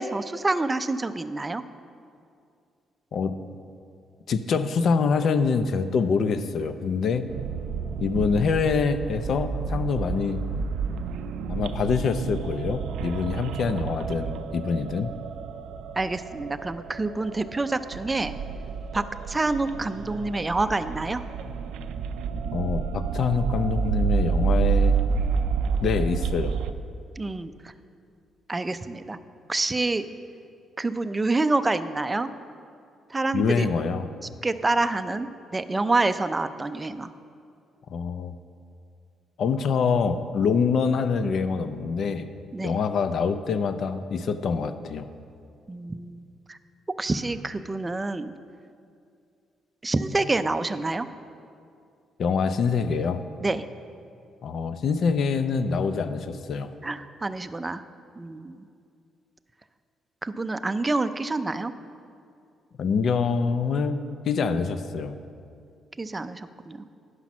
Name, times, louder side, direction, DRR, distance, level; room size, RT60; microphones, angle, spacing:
voice 1, 0.0-1.6 16.0-18.3 18.9-21.2 27.2-27.5 28.5-29.2 29.5-30.1 30.8-32.3 33.1-33.7 34.4-37.1 42.5-42.8 45.7-46.2 46.5-46.6 47.0-48.3 49.8-51.1 53.4-53.6 56.8-57.8 58.2-58.7 60.2-61.7 66.0-66.8, right 2 dB, 20° right, 11 dB, 0.4 m, -27 dB
voice 2, 4.3-7.3 8.0-10.4 11.5-15.1 22.5-25.0 25.8-26.6 33.3-34.1 37.9-38.3 39.4-42.3 42.6-45.1 52.2-53.2 54.4-56.7 62.8-65.2, left 5 dB, 60° left, 10 dB, 0.5 m, -25 dB
sound 1, 7.3-26.7, right 5 dB, 85° right, 0.4 m, -29 dB
9.6 x 5.8 x 6.1 m, 2.4 s
cardioid pair, 90°, 0 cm